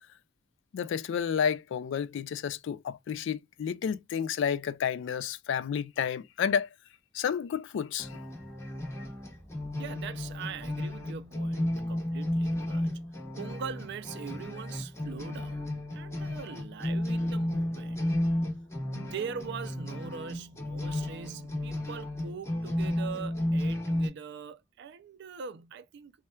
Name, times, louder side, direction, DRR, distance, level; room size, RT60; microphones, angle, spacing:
voice 1, 0.7-6.7 7.1-8.1, left 7 dB, 65° left, 0.3 m, -31 dB
sound 1, 8.0-24.1, left 1 dB, 15° left, 0.9 m, -33 dB
voice 2, 9.8-13.1 13.4-18.1 18.9-26.1, right 6 dB, 60° right, 0.4 m, -42 dB
4.2 x 2.2 x 2.2 m
head